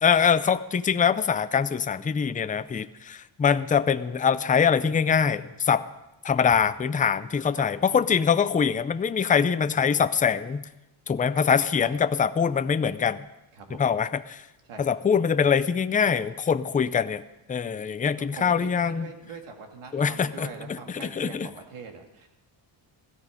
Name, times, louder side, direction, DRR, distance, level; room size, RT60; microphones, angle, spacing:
voice 1, 0.0-5.8 6.2-10.6 11.1-13.3 13.8-14.4 14.8-17.2 17.5-19.1 19.9-21.5, left 7 dB, 15° left, 12 dB, 0.4 m, -23 dB
voice 2, 13.5-13.8 14.7-14.9 18.1-22.3, right 5 dB, 90° right, 4 dB, 2.4 m, -42 dB
17.0 x 14.0 x 5.1 m, 0.97 s
cardioid pair, 130°, 49 cm